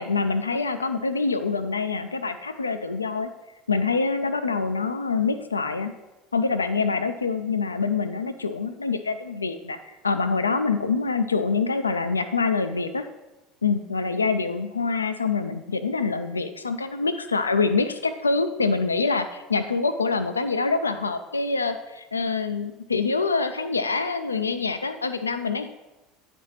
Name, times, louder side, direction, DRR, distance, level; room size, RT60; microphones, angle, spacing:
voice 1, 0.0-3.3 3.7-5.9 6.3-13.1 13.6-25.7, left 4 dB, 90° left, 9 dB, 0.3 m, -25 dB
9.8 x 4.1 x 3.1 m, 1.0 s
figure-of-eight pair, 70°, 0 cm